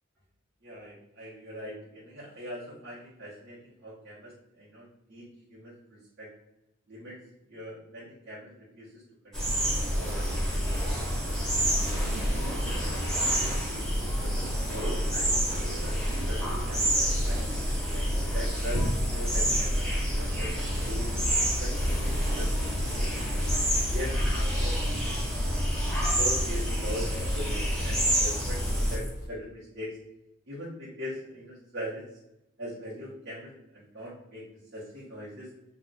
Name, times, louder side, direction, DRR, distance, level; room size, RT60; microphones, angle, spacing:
voice 1, 0.6-6.3 6.9-7.2 7.5-9.7 9.9-12.0 12.5-15.3 15.6-16.0 16.3-16.4 16.7-17.4 17.9-20.5 20.8-21.1 21.6-23.6 23.9-24.8 26.1-30.0 30.5-32.0 32.6-34.4 34.7-35.5, equal, 55° right, -8 dB, 0.9 m, -42 dB
sound 1, 9.3-29.0, equal, 5° left, 0.7 m, -28 dB
sound 2, 9.9-29.3, equal, 40° left, 0.6 m, -40 dB
2.3 x 2.3 x 3.8 m, 0.92 s
head